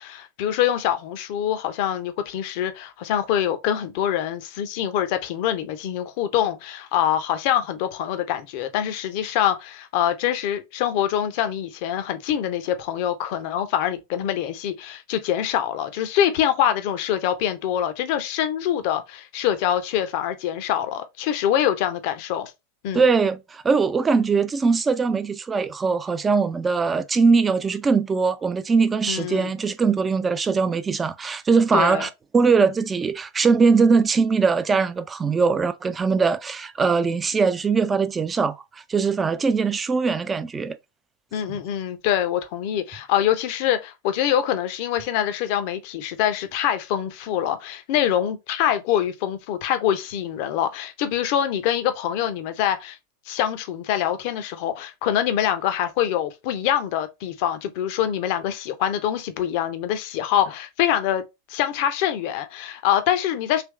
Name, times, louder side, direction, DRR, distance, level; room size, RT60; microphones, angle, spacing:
voice 1, 0.0-22.5 22.8-23.0 29.1-29.5 31.7-32.1 41.3-53.0 53.3-61.2 61.5-63.6, left 10 dB, 45° left, 0.6 m, -24 dB
voice 2, 22.9-38.6 38.9-40.8, right 5 dB, 15° right, 0.4 m, -21 dB
3.3 x 3.0 x 3.0 m
figure-of-eight pair, 90°, 0 cm